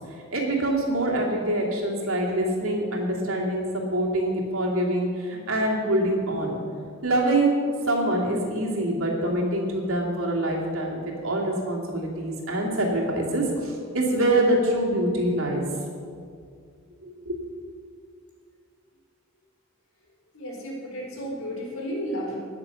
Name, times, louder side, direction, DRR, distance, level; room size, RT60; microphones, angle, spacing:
voice 1, 0.3-6.6 7.0-7.6 7.9-15.6 17.0-17.6, right 1 dB, 85° right, -2 dB, 2.7 m, -25 dB
voice 2, 20.3-22.3, equal, 85° left, -2 dB, 4.0 m, -33 dB
19.5 x 6.8 x 5.7 m, 2.3 s
head